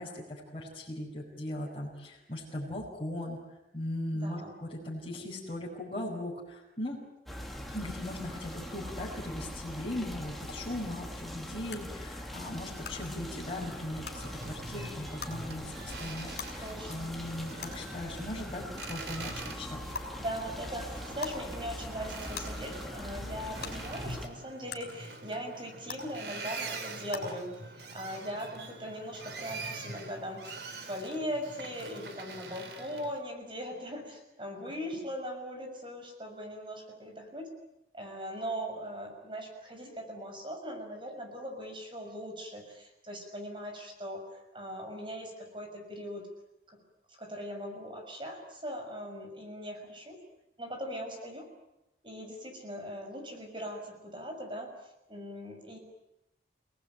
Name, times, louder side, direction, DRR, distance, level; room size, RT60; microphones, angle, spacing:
voice 1, 0.0-3.4 3.7-7.0 7.7-19.8 34.6-34.7, left 1 dB, 30° left, -7 dB, 6.1 m, -39 dB
voice 2, 4.1-4.6 16.6-17.1 20.2-37.5 37.9-46.3 46.7-46.8 47.2-50.2 50.6-51.5 52.0-54.8 55.1-55.8, equal, 30° right, 4 dB, 6.5 m, -40 dB
sound 1, 7.3-24.3, equal, ahead, 2.6 m, -42 dB
sound 2, 10.5-10.6 11.7-11.8 12.8-12.9 14.0-14.1 15.2-15.3 16.4-16.5 17.6-17.7 18.8-18.9 19.9-20.0 21.2-21.4 22.3-22.4 23.6-23.7 24.7-24.8 25.9-26.0 27.1-27.2, left 5 dB, 60° left, 5.6 m, -38 dB
Boat Water vehicle, 13.4-33.2, right 3 dB, 70° right, 3.2 m, -45 dB
29.0 x 19.0 x 9.4 m, 0.92 s
head